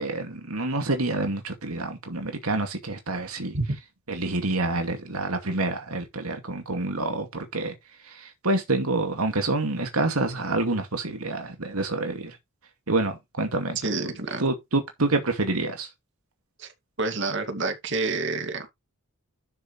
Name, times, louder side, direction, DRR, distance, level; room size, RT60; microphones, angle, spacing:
voice 1, 0.0-3.6 4.1-7.7 8.0-12.4 12.9-13.8 14.4-15.9, right 2 dB, 85° right, 2.4 m, -27 dB
voice 2, 13.8-14.4 16.6-16.7 17.0-18.7, right 3 dB, 55° right, 2.4 m, -28 dB
12.0 x 6.6 x 3.3 m
head